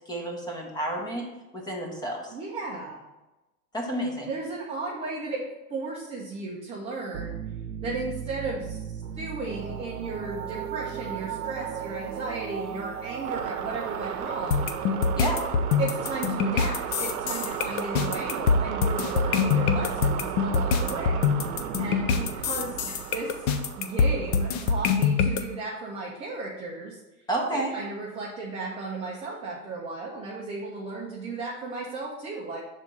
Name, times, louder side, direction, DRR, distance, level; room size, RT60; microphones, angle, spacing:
voice 1, 0.1-1.2 1.5-2.3 3.7-4.3 15.1-15.4 27.3-27.7, right 1 dB, 10° left, 0 dB, 0.9 m, -30 dB
voice 2, 2.3-3.1 4.3-7.4 7.8-8.8 9.2-14.8 15.8-21.3 21.8-23.3 23.8-27.0 27.5-32.6, right 3 dB, 15° right, -4 dB, 0.5 m, -35 dB
sound 1, 7.1-25.6, right 8 dB, 75° right, 0.8 m, -35 dB
sound 2, 14.5-25.4, left 5 dB, 35° left, 0.5 m, -24 dB
6.3 x 3.7 x 5.3 m, 1.0 s
supercardioid pair, 145°, 46 cm